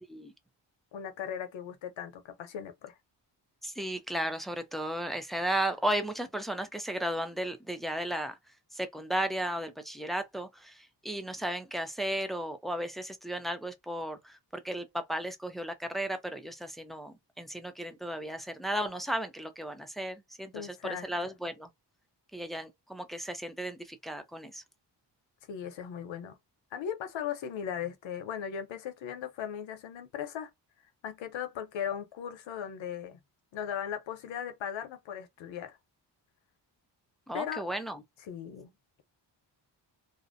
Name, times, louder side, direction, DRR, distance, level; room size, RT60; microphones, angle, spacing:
voice 1, 0.9-3.0 20.5-21.1 25.5-26.4 26.7-30.5 31.0-33.2 33.5-35.8 37.3-37.6 38.3-38.7, left 8 dB, 90° left, 0.7 m, -38 dB
voice 2, 3.6-8.4 8.7-21.7 22.3-24.6 37.3-38.0, right 1 dB, ahead, 0.4 m, -35 dB
2.5 x 2.0 x 2.5 m
cardioid pair, 95°, 44 cm